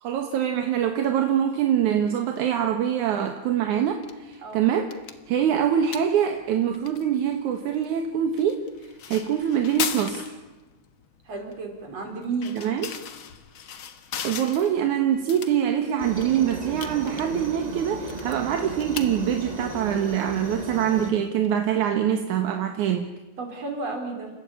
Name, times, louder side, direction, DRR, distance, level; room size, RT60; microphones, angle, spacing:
voice 1, 0.0-4.9 5.3-8.6 9.1-10.4 12.5-12.9 14.2-23.0, right 9 dB, 60° right, 5 dB, 2.4 m, -24 dB
sound 1, 3.8-22.2, left 8 dB, 75° left, 1.1 m, -40 dB
voice 2, 11.3-12.6 23.4-24.3, right 4 dB, 40° right, 4 dB, 5.0 m, -32 dB
Aircraft, 16.0-21.1, right 2 dB, 20° right, 1.0 m, -35 dB
30.0 x 16.0 x 8.7 m, 1.2 s
omnidirectional pair, 4.5 m